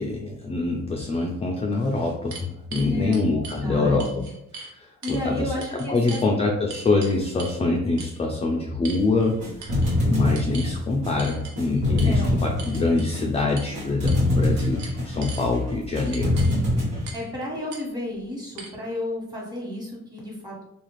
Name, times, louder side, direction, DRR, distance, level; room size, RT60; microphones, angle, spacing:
voice 1, 0.0-4.3 4.5-14.8 15.0-16.3, left 3 dB, 20° left, 0 dB, 0.4 m, -25 dB
sound 1, 1.1-1.2 1.7-3.6 4.0-4.7 5.0-5.2 5.6-6.3 6.7-7.6 8.0-8.2 8.8-9.3 9.6-10.0 10.3-10.7 11.2-11.5 12.0-12.1 12.6-13.1 13.6-13.7 14.1-14.3 14.6-15.4 16.1-16.6 17.1-17.3 17.7-17.8 18.6-18.7, right 4 dB, 65° right, 0.7 m, -40 dB
voice 2, 2.7-4.3 5.0-6.2 12.0-12.3 17.1-20.6, left 1 dB, 15° right, -3 dB, 1.2 m, -32 dB
sound 2, 9.0-17.1, left 1 dB, 85° right, 1.4 m, -25 dB
2.4 x 2.4 x 3.0 m, 0.84 s
cardioid pair, 90°, 30 cm